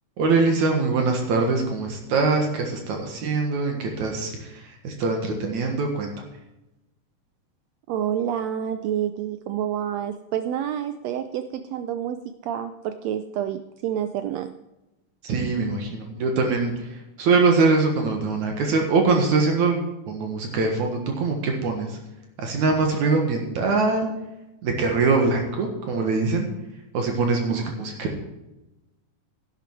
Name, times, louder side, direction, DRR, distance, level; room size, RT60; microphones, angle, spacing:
voice 1, 0.2-6.1 15.2-22.0 22.4-24.1 24.6-26.5 26.9-28.1, right 3 dB, 65° right, 3 dB, 2.8 m, -23 dB
voice 2, 7.9-14.5 27.5-27.7, right 10 dB, 85° right, 10 dB, 1.5 m, -28 dB
11.5 x 11.0 x 4.6 m, 0.98 s
omnidirectional pair, 3.7 m